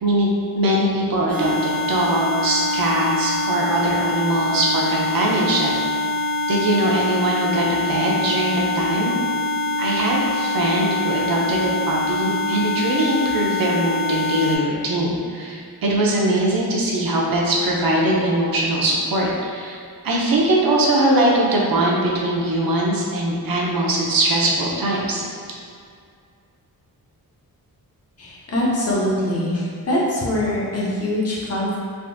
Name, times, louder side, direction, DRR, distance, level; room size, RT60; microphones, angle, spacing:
voice 1, 0.0-5.7 6.5-9.1 9.8-19.8 20.0-25.2, right 1 dB, 65° right, -3 dB, 0.6 m, -21 dB
sound 1, 1.3-14.6, left 2 dB, 75° left, 0.9 m, -24 dB
voice 2, 28.2-31.8, left 1 dB, 40° left, -6 dB, 0.7 m, -23 dB
3.5 x 2.5 x 2.6 m, 2.2 s
wide cardioid pair, 165°, 37 cm